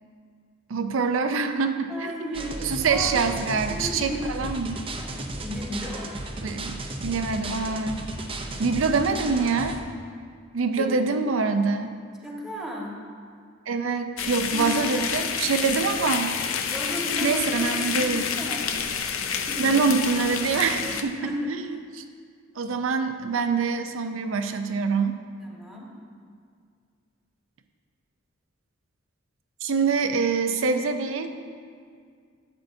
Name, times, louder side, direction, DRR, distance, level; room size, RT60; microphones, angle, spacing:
voice 1, 0.7-4.8 6.4-8.0 8.6-9.8 10.5-11.9 13.7-16.4 17.2-18.3 19.6-21.2 21.5-22.0 22.6-25.2 29.6-31.3, right 4 dB, 75° right, 7 dB, 0.5 m, -25 dB
voice 2, 1.9-3.2 3.7-4.3 5.0-5.1 5.4-6.1 10.8-10.9 12.2-13.0 14.5-14.9 16.7-18.7 19.4-19.9 20.5-21.4 25.4-25.9, equal, ahead, -4 dB, 1.3 m, -35 dB
sound 1, 2.3-9.8, right 2 dB, 25° right, 0.6 m, -34 dB
sound 2, 14.2-21.0, left 7 dB, 90° left, 0.5 m, -29 dB
11.5 x 8.1 x 2.7 m, 2.1 s
head